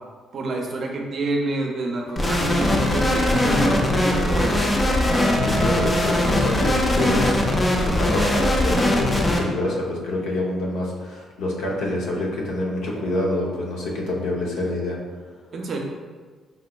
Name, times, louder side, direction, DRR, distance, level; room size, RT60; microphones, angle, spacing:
voice 1, 0.3-4.8 15.5-15.8, right 2 dB, 55° right, 1 dB, 0.5 m, -28 dB
sound 1, 2.0-6.9, equal, 55° left, 1.1 m, -32 dB
sound 2, 2.2-9.4, left 1 dB, 25° left, 0.5 m, -21 dB
voice 2, 5.4-15.0, left 1 dB, 85° left, -2 dB, 0.6 m, -27 dB
3.5 x 2.9 x 2.3 m, 1.5 s
cardioid pair, 90°, 0 cm